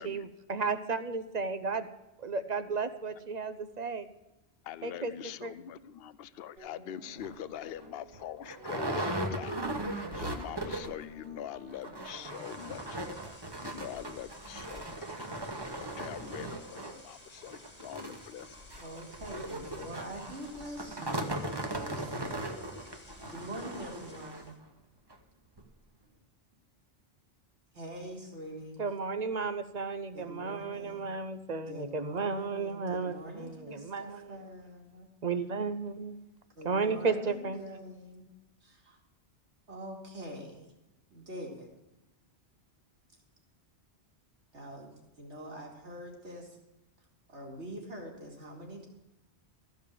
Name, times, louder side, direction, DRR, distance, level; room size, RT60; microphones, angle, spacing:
voice 1, 0.0-1.9 2.2-4.1 4.8-5.1 5.4-5.5 28.8-34.5 35.2-36.2 36.6-37.6, right 4 dB, 45° right, 11 dB, 0.7 m, -33 dB
voice 2, 4.6-13.0 13.6-15.3 16.0-18.8, left 10 dB, 65° left, 15 dB, 0.7 m, -44 dB
sound 1, 6.6-13.7, right 2 dB, 65° right, 2.0 m, -55 dB
sound 2, 7.2-7.3 7.8-7.9 8.1-11.1 11.3-11.4 11.7-24.5 25.1-25.2 25.6-25.7, right 1 dB, 25° right, 1.0 m, -38 dB
sound 3, 12.1-24.6, left 2 dB, 35° left, 1.8 m, -54 dB
voice 3, 18.8-21.4 21.7-22.5 23.2-24.5 26.0-26.2 27.8-28.8 30.1-31.1 31.6-35.1 36.5-38.3 38.6-39.0 39.7-40.7 41.1-41.7 44.5-44.9 45.2-46.6 47.3-48.9, equal, 85° right, 0 dB, 2.7 m, -44 dB
13.5 x 5.2 x 8.4 m, 0.99 s
omnidirectional pair, 1.1 m